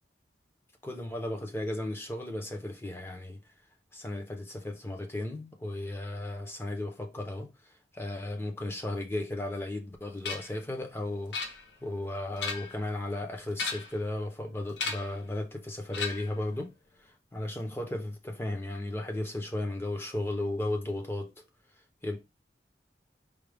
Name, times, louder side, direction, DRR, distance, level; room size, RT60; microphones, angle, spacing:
voice 1, 0.8-3.4 3.9-7.5 7.9-16.7 17.0-21.4 22.0-22.2, left 1 dB, 15° left, 0.7 m, -35 dB
sound 1, 10.2-10.6 11.3-11.9 12.3-12.8 13.5-14.1 14.8-15.2 15.9-16.4, left 4 dB, 85° left, 0.8 m, -35 dB
4.9 x 2.3 x 3.3 m
head